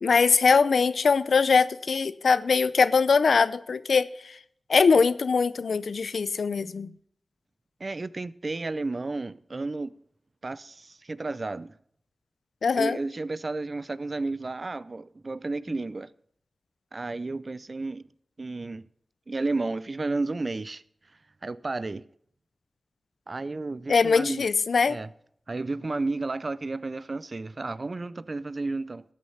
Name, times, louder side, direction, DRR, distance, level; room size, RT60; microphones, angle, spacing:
voice 1, 0.0-4.4 4.7-6.9 12.6-13.0 23.9-25.0, left 5 dB, 80° left, 0.5 m, -22 dB
voice 2, 7.8-10.0 10.4-11.8 12.7-16.1 16.9-18.1 18.4-18.8 19.3-20.8 21.4-22.0 23.3-24.5 24.9-25.1 25.5-29.0, right 3 dB, 50° right, 0.5 m, -32 dB
13.0 x 8.7 x 5.6 m
cardioid pair, 50°, 0 cm